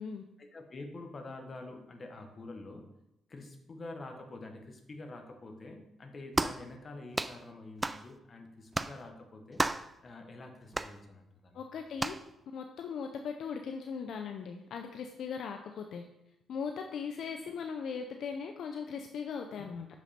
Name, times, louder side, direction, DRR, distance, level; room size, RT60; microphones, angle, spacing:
voice 1, 0.4-2.9 3.3-9.6 10.0-11.6, left 2 dB, 40° left, 4 dB, 1.4 m, -47 dB
sound 1, 6.3-6.6 7.1-7.4 7.8-8.0 8.7-9.0 9.6-9.9 10.7-10.9 12.0-12.2, right 2 dB, 15° right, 0.3 m, -32 dB
voice 2, 11.5-12.2 12.5-16.1 16.5-19.9, left 6 dB, 70° left, 5 dB, 0.5 m, -39 dB
6.4 x 6.2 x 4.3 m, 0.87 s
cardioid pair, 90°, 0 cm